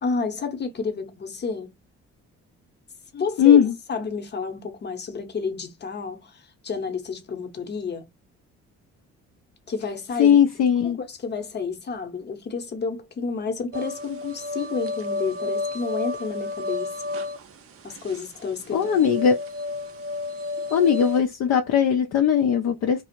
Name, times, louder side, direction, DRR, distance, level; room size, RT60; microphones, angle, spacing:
voice 1, 0.0-1.7 3.1-3.6 3.9-8.1 9.7-10.6 10.8-16.9 17.8-19.1, left 4 dB, 35° left, 0.8 m, -30 dB
voice 2, 3.4-3.8 9.8-9.9 10.1-11.0 18.7-19.4 20.7-23.0, left 8 dB, 60° left, 0.4 m, -19 dB
sound 1, 13.7-21.2, left 3 dB, 50° right, 0.5 m, -31 dB
2.4 x 2.0 x 2.8 m
cardioid pair, 90°, 30 cm